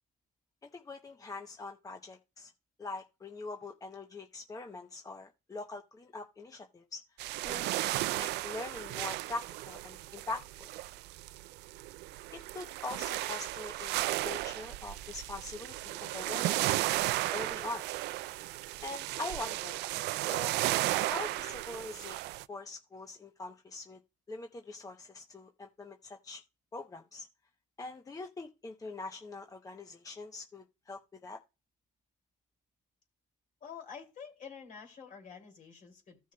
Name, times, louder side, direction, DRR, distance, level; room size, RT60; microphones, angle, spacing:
voice 1, 0.7-2.5 2.8-7.0 7.4-7.7 8.1-10.7 12.5-17.8 18.8-19.8 20.3-20.5 20.9-22.2 22.5-24.0 24.3-26.4 26.7-27.3 27.8-31.4, left 3 dB, 20° left, 0.8 m, -43 dB
sound 1, 7.2-22.5, right 17 dB, 85° right, 0.4 m, -34 dB
voice 2, 33.6-36.3, left 6 dB, 50° left, 2.7 m, -48 dB
15.5 x 6.3 x 2.3 m
cardioid pair, 110°, 17 cm